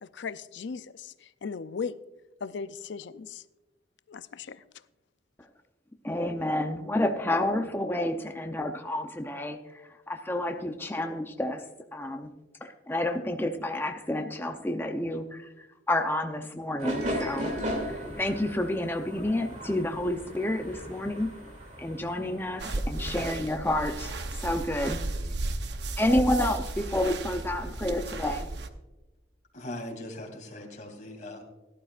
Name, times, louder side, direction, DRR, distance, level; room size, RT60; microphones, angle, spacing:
voice 1, 0.0-2.0 2.4-3.4 4.1-4.6, left 5 dB, 80° left, 14 dB, 0.5 m, -37 dB
voice 2, 6.0-11.6 11.9-12.3 12.6-21.3 21.8-25.0 26.0-28.5, left 1 dB, 10° left, 5 dB, 0.6 m, -30 dB
sound 1, 16.8-23.3, equal, 40° right, 2.5 m, -36 dB
sound 2, 22.6-28.7, right 2 dB, 65° right, 0.8 m, -34 dB
voice 3, 29.5-31.4, left 1 dB, 45° left, 2 dB, 2.6 m, -40 dB
17.0 x 11.5 x 2.4 m, 1.1 s
head